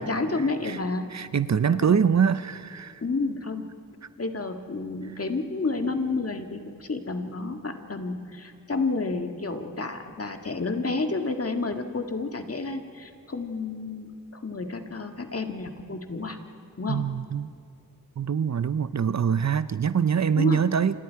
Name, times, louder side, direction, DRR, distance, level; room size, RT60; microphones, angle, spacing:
voice 1, 0.0-1.1 1.7-2.0 3.0-3.7 4.2-14.1 14.3-16.4 16.8-17.0 20.4-20.7, left 3 dB, 45° left, 5 dB, 1.9 m, -30 dB
voice 2, 1.1-3.0 16.9-17.5 18.2-21.0, right 7 dB, 50° right, 14 dB, 0.6 m, -24 dB
29.5 x 26.5 x 4.7 m, 2.2 s
wide cardioid pair, 75°, 34 cm